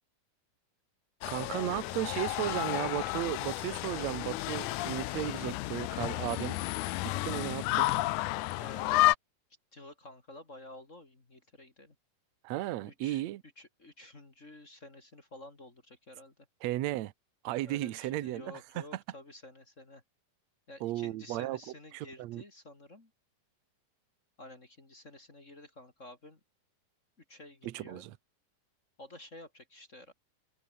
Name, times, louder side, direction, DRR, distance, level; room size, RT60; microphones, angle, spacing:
sound 1, 1.2-9.2, left 18 dB, 75° left, 2.0 m, -31 dB
voice 1, 1.3-6.6 7.0-7.9 12.4-13.4 16.6-17.1 17.4-18.4 20.8-21.6 21.9-22.4 27.6-28.1, right 16 dB, 65° right, 1.9 m, -35 dB
voice 2, 7.1-7.5 8.6-9.0 9.7-12.0 12.9-13.2 13.6-16.5 17.6-20.0 20.7-23.1 24.4-26.4 27.3-28.1 29.0-30.1, left 1 dB, 25° left, 2.8 m, -51 dB
omnidirectional pair, 3.9 m